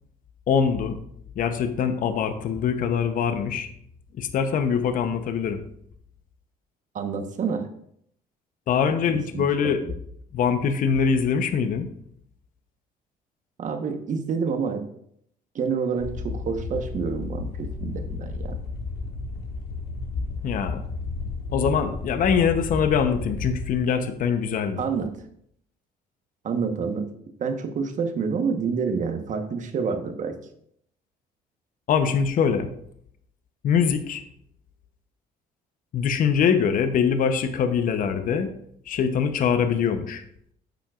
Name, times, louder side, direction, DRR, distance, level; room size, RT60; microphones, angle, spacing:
voice 1, 0.5-1.0 1.4-3.7 4.2-5.6 8.7-9.8 10.3-11.9 20.4-20.8 21.5-24.8 31.9-32.7 33.6-34.2 35.9-38.5 38.9-40.2, left 7 dB, 55° left, 9 dB, 0.8 m, -23 dB
voice 2, 6.9-7.7 9.1-9.4 9.8-9.9 13.6-14.8 15.5-18.6 24.8-25.1 26.4-27.1 27.4-30.4, right 5 dB, 50° right, 7 dB, 1.1 m, -28 dB
sound 1, 16.0-23.8, left 4 dB, 75° left, 1.6 m, -32 dB
10.5 x 7.3 x 2.4 m, 0.70 s
cardioid pair, 110°, 17 cm